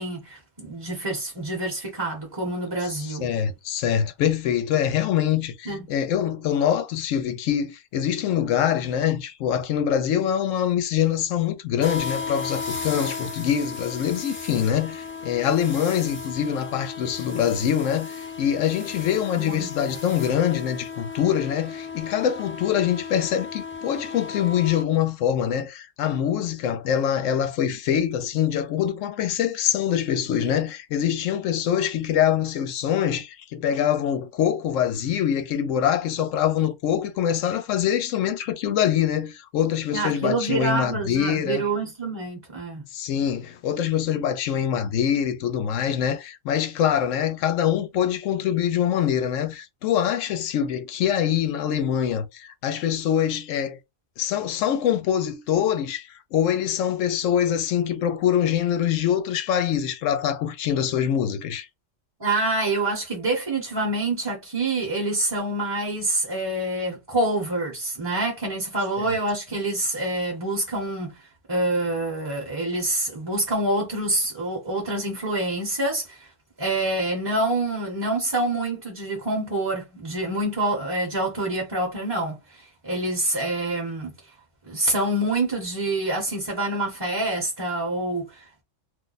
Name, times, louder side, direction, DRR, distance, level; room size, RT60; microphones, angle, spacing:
voice 1, 0.0-3.3 5.7-5.9 19.4-19.7 39.9-42.8 62.2-76.3 76.6-84.1 84.6-88.6, right 2 dB, 25° right, 0.8 m, -26 dB
voice 2, 2.8-41.6 42.9-53.8 54.2-61.7 69.0-69.1, left 9 dB, 80° left, 0.9 m, -24 dB
sound 1, 11.8-24.8, left 5 dB, 15° left, 0.5 m, -35 dB
2.5 x 2.1 x 3.9 m
omnidirectional pair, 1.3 m